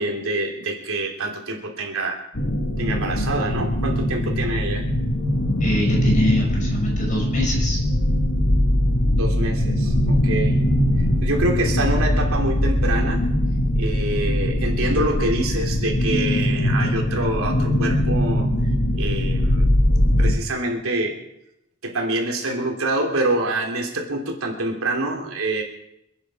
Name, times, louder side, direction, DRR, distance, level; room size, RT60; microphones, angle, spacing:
voice 1, 0.0-2.2 2.8-4.8 9.2-10.6 11.2-13.2 13.8-18.5 19.0-19.7 20.2-21.2 21.8-25.6, right 2 dB, 75° right, 1 dB, 3.2 m, -26 dB
sound 1, 2.4-20.3, left 1 dB, 55° left, 1.5 m, -21 dB
voice 2, 5.6-7.8, left 1 dB, 35° left, -1 dB, 5.7 m, -25 dB
27.5 x 9.9 x 4.9 m, 0.83 s
head